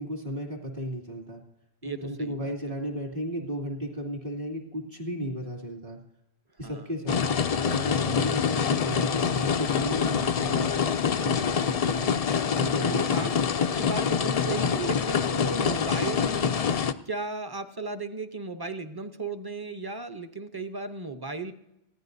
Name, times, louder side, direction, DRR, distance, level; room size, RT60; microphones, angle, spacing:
voice 1, 0.0-1.4 1.8-6.0 6.6-12.2 12.5-13.4, equal, 55° right, 2 dB, 2.7 m, -34 dB
voice 2, 1.8-2.5 6.6-6.9 12.7-13.3 13.8-16.5 17.1-21.5, right 3 dB, 25° right, 8 dB, 0.8 m, -35 dB
sound 1, 7.1-16.9, left 7 dB, 50° left, 0.4 m, -26 dB
20.0 x 15.5 x 2.7 m, 0.88 s
omnidirectional pair, 1.1 m